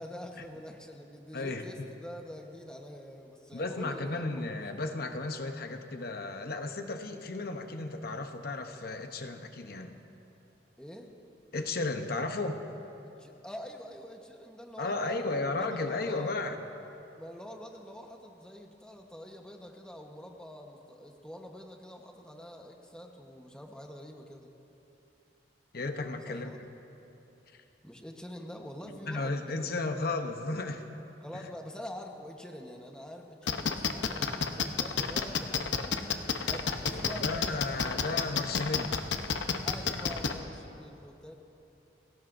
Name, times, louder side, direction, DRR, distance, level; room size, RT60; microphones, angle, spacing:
voice 1, 0.0-4.8 10.8-11.1 13.2-16.4 17.2-24.5 26.3-26.6 27.8-29.7 31.2-36.2 36.5-38.2 39.6-41.3, equal, 5° left, 2 dB, 1.1 m, -46 dB
voice 2, 1.3-1.9 3.5-10.0 11.5-12.6 14.8-16.6 25.7-26.5 27.5-27.6 29.0-30.9 31.3-31.5 36.9-39.0 39.9-40.0, left 3 dB, 55° left, 6 dB, 0.9 m, -34 dB
sound 1, 33.5-40.3, left 6 dB, 85° left, 0.9 m, -29 dB
30.0 x 17.0 x 2.6 m, 3.0 s
head